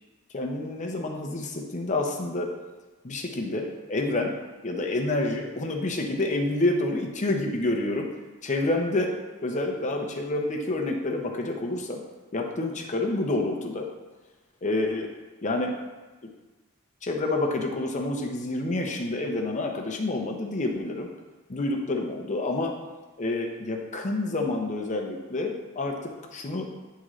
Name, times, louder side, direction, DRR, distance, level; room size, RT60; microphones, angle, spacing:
voice 1, 0.3-2.5 3.0-4.3 4.6-8.1 8.4-9.1 9.4-12.0 12.3-13.9 14.6-15.1 15.4-15.7 17.0-21.1 21.5-22.7 23.2-26.7, left 2 dB, 35° left, 2 dB, 0.7 m, -28 dB
9.4 x 3.7 x 3.1 m, 1.2 s
head